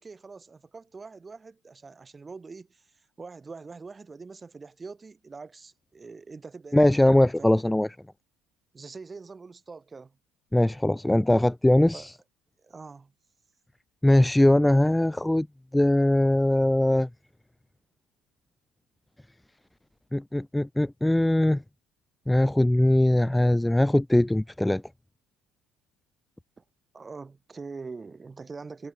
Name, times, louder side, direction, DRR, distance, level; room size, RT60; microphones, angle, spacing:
voice 1, 0.0-6.8 7.4-7.5 8.7-10.2 11.9-12.1 12.6-13.1 26.6-26.7 26.9-28.9, right 4 dB, 25° right, 7.6 m, -43 dB
voice 2, 6.7-7.9 10.5-12.1 14.0-15.5 15.7-17.1 20.1-21.6 22.3-24.8, left 1 dB, 5° left, 0.5 m, -21 dB
hypercardioid pair, 65°, 0 cm